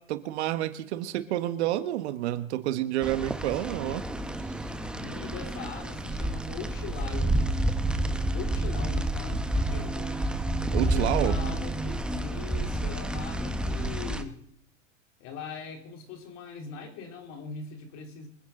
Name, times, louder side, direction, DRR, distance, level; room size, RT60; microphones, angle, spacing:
voice 1, 0.1-4.1 10.7-11.4, right 13 dB, 60° right, 11 dB, 1.4 m, -29 dB
Traffic on a wet road., 3.0-14.2, right 1 dB, ahead, 0.9 m, -29 dB
voice 2, 4.9-7.5 8.3-10.3 10.8-14.4 15.2-18.3, left 5 dB, 45° left, 4 dB, 3.4 m, -41 dB
25.5 x 9.7 x 3.8 m, 0.76 s
hypercardioid pair, 125°, 38 cm